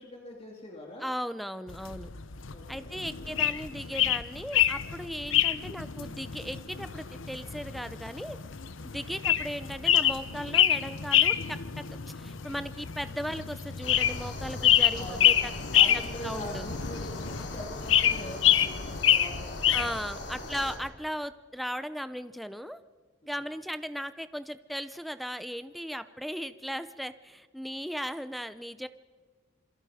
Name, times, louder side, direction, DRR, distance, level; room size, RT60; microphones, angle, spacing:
voice 1, 0.0-1.1 2.5-3.3 9.0-9.2 15.0-15.3 15.7-19.9 20.4-20.7 23.2-23.5, left 1 dB, 30° left, -1 dB, 2.5 m, -43 dB
voice 2, 1.0-2.1 2.7-8.4 8.8-11.6 12.1-15.5 16.2-16.7 19.7-22.8 23.3-28.9, equal, ahead, 12 dB, 0.6 m, -37 dB
sound 1, 1.7-20.1, left 10 dB, 85° left, 0.9 m, -27 dB
sound 2, 13.8-20.8, left 2 dB, 60° left, 3.5 m, -40 dB
27.5 x 22.5 x 5.0 m, 1.4 s
head